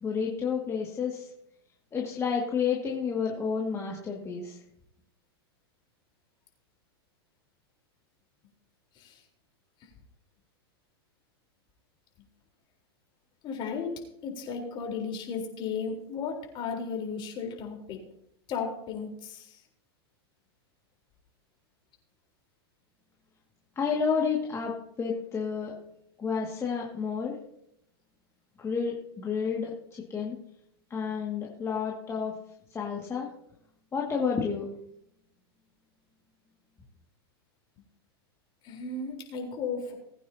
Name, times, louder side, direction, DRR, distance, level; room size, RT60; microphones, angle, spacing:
voice 1, 0.0-1.3 1.9-4.6 23.8-24.7 25.0-25.7 26.2-27.4 28.6-29.7 30.1-30.4 30.9-32.3 32.7-33.3 33.9-34.7, left 6 dB, 20° left, -2 dB, 2.1 m, -30 dB
voice 2, 13.4-18.0 18.5-19.6 38.6-39.9, left 5 dB, 40° left, 1 dB, 4.0 m, -35 dB
20.0 x 9.1 x 2.9 m, 0.74 s
hypercardioid pair, 110°, 13 cm